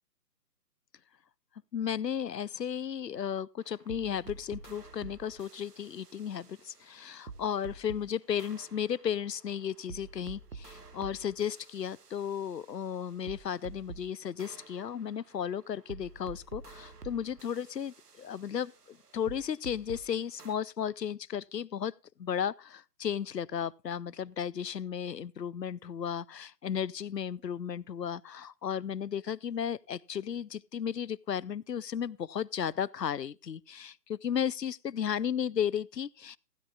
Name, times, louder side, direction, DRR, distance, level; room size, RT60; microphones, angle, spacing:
voice 1, 1.7-21.9 22.2-36.4, left 8 dB, 90° left, 0.6 m, -34 dB
sound 1, 3.6-8.1 8.4-14.1 14.4-20.1 20.4-20.5, right 4 dB, 70° right, 1.2 m, -49 dB
16.0 x 13.0 x 2.3 m
figure-of-eight pair, 140°, 48 cm